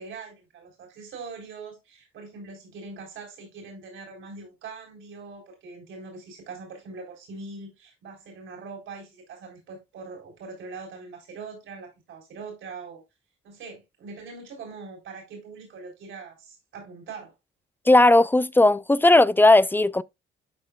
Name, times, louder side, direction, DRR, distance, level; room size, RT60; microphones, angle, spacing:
voice 1, 0.0-13.0 13.4-17.3, right 4 dB, 80° right, 4.0 m, -42 dB
voice 2, 17.9-20.0, left 2 dB, 10° left, 0.3 m, -17 dB
12.0 x 4.5 x 2.3 m
cardioid pair, 90°, 20 cm